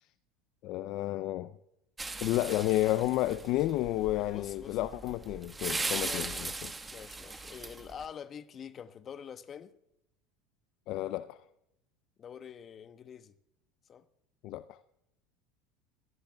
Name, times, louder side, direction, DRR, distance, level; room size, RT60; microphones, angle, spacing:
voice 1, 0.6-1.6 2.2-6.7 10.9-11.4 14.4-14.8, left 15 dB, 60° left, 0.5 m, -31 dB
sound 1, 2.0-8.0, right 3 dB, 15° right, 1.4 m, -39 dB
voice 2, 4.2-4.8 6.0-9.7 12.2-13.3 13.9-14.0, left 8 dB, 40° left, 1.0 m, -46 dB
26.5 x 13.5 x 2.3 m
hypercardioid pair, 80°, 0 cm